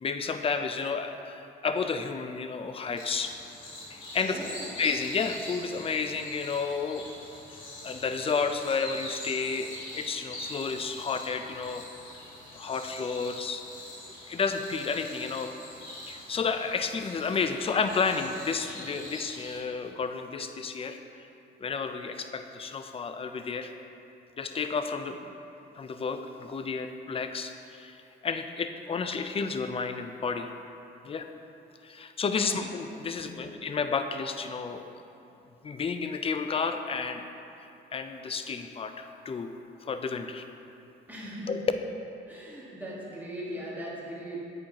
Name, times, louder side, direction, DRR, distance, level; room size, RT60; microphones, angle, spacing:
voice 1, 0.0-3.3 3.9-4.4 4.8-7.1 7.8-11.8 12.5-13.6 14.3-15.6 16.1-21.3 21.6-23.7 24.4-25.3 25.7-28.0 28.2-30.5 31.0-31.3 31.8-34.9 35.6-37.2 37.9-40.4 41.5-41.6, left 5 dB, 30° left, 7 dB, 0.4 m, -31 dB
sound 1, 3.0-19.6, left 1 dB, 85° left, 1.3 m, -44 dB
voice 2, 4.2-4.7 32.4-32.6 33.3-33.5 41.1-41.5 42.3-44.4, right 1 dB, 10° right, -6 dB, 1.5 m, -39 dB
8.8 x 4.4 x 2.8 m, 2.8 s
cardioid pair, 90°, 20 cm